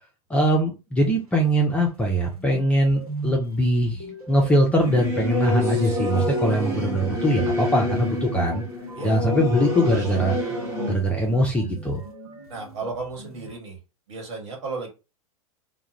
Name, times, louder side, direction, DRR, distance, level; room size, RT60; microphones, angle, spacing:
voice 1, 0.3-8.6 9.0-10.4 10.9-12.0, equal, 5° left, 0.5 m, -22 dB
sound 1, 2.0-2.1 2.3-13.6, right 1 dB, 80° right, 1.1 m, -39 dB
Singing / Musical instrument, 4.7-10.9, left 1 dB, 15° right, 1.1 m, -28 dB
voice 2, 12.5-13.8 14.1-14.9, right 4 dB, 55° right, 1.3 m, -34 dB
2.3 x 2.2 x 3.0 m
figure-of-eight pair, 95°, 18 cm